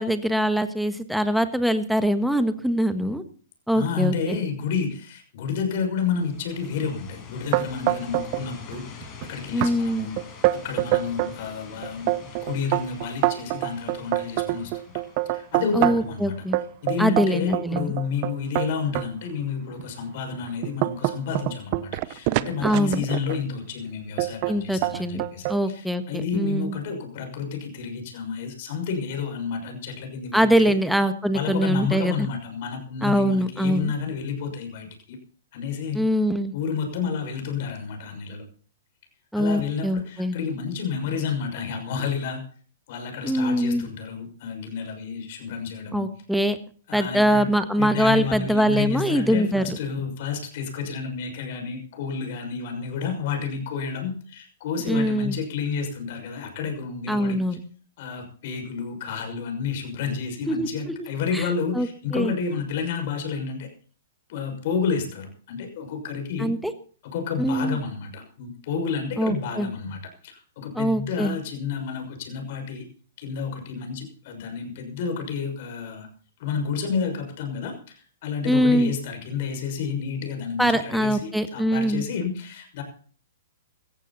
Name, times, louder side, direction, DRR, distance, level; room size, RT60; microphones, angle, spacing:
voice 1, 0.0-3.2 3.7-4.4 9.5-10.1 15.7-16.6 17.0-17.9 22.6-23.1 24.5-25.2 25.5-26.0 26.3-26.7 30.3-32.3 33.0-33.9 35.9-36.5 39.3-40.4 43.2-43.9 45.9-46.6 46.9-49.8 54.9-55.4 57.1-57.6 60.4-60.7 61.3-61.4 61.7-61.9 62.1-62.3 66.4-66.7 67.4-67.8 69.2-69.7 70.7-71.4 78.5-78.9 80.6-82.0, equal, ahead, 9 dB, 1.5 m, -23 dB
voice 2, 3.7-10.1 10.5-14.7 15.2-16.4 16.8-30.8 31.3-35.2 35.5-36.0 36.5-38.4 39.3-42.4 42.9-46.0 46.9-57.4 58.0-63.7 64.3-66.5 67.0-72.9 73.2-76.1 76.4-82.8, left 6 dB, 55° left, 5 dB, 6.2 m, -30 dB
sound 1, 6.2-16.9, left 6 dB, 35° left, 6.1 m, -45 dB
sound 2, 7.5-8.4 8.7-9.2 9.6-9.7 10.2-11.3 11.8-16.1 16.5-19.1 19.7-19.8 20.3-23.4 24.2-24.5 24.8-25.6, right 18 dB, 45° right, 0.8 m, -25 dB
16.5 x 14.5 x 4.2 m, 0.43 s
hypercardioid pair, 130°, 0 cm